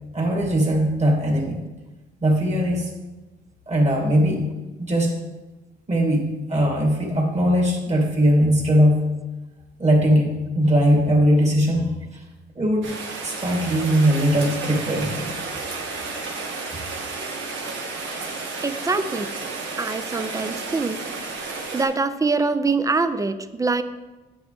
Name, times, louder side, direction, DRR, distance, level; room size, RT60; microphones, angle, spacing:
voice 1, 0.1-1.6 2.2-2.9 3.7-4.4 4.8-5.1 5.9-9.0 9.8-11.8 12.1-12.2 12.6-13.0 13.2-15.3 15.8-15.9 16.6-16.8, equal, 35° right, -1 dB, 2.8 m, -20 dB
Rain, 12.8-21.8, right 3 dB, 75° right, 1.8 m, -32 dB
voice 2, 18.6-19.3 19.8-21.0 21.4-23.8, right 3 dB, 15° right, 12 dB, 0.6 m, -24 dB
9.0 x 8.3 x 3.5 m, 1.1 s
cardioid pair, 90°, 20 cm